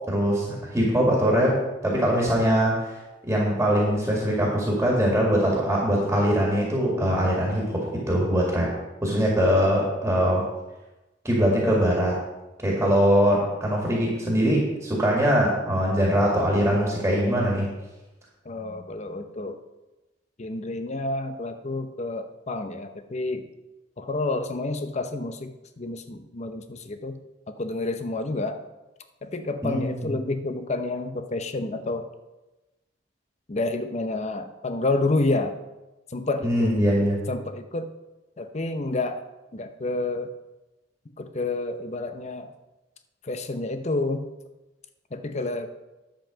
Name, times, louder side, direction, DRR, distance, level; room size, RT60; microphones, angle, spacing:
voice 1, 0.1-0.5 0.7-7.8 8.1-8.7 9.0-10.5 11.2-12.2 12.6-17.7 29.6-30.1 36.4-37.2, equal, 10° right, -3 dB, 2.2 m, -22 dB
voice 2, 18.4-19.6 20.4-23.5 24.0-27.2 27.5-28.6 29.2-32.1 33.5-35.6 36.1-36.7 37.3-37.9 38.4-39.2 39.5-40.3 41.2-42.5 43.2-44.3 45.1-45.7, left 2 dB, 40° left, 8 dB, 0.8 m, -29 dB
10.5 x 7.6 x 5.1 m, 1.1 s
head